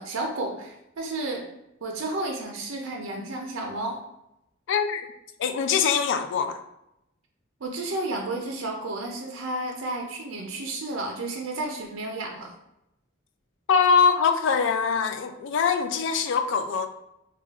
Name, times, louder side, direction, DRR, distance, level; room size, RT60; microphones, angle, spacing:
voice 1, 0.0-1.4 1.8-4.0 7.6-12.5, right 2 dB, 80° right, 1 dB, 0.5 m, -32 dB
voice 2, 4.7-5.0 5.4-6.6 13.7-16.9, left 6 dB, 65° left, 7 dB, 0.3 m, -23 dB
2.4 x 2.2 x 3.9 m, 0.84 s
head